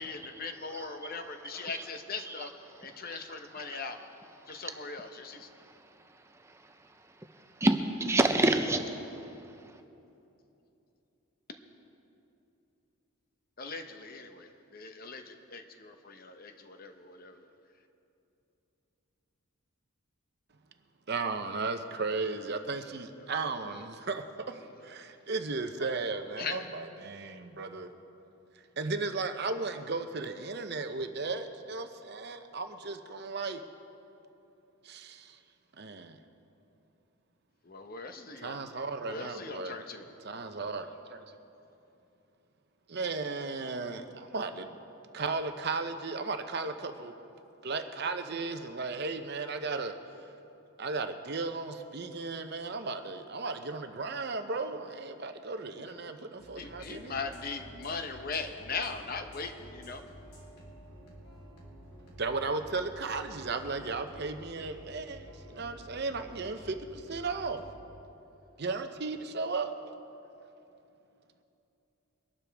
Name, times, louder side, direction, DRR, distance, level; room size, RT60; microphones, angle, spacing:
voice 1, 0.0-2.5 2.8-4.0 4.5-5.5 13.6-17.5 23.6-23.8 25.8-25.9 26.4-26.7 37.6-38.6 39.0-40.1 55.8-56.2 56.6-60.0, left 4 dB, 40° left, 6 dB, 0.9 m, -40 dB
voice 2, 6.4-6.8 7.4-9.8, right 2 dB, 10° right, 6 dB, 0.5 m, -29 dB
voice 3, 21.1-27.9 28.8-33.6 34.8-35.4 35.8-36.2 38.4-39.8 40.2-41.2 42.9-44.8 45.1-47.1 47.6-49.9 50.8-57.2 62.2-67.6 68.6-69.7, right 3 dB, 45° right, 7 dB, 0.7 m, -35 dB
sound 1, 56.4-67.8, equal, 80° left, 3.6 m, -51 dB
23.5 x 12.0 x 3.5 m, 2.9 s
head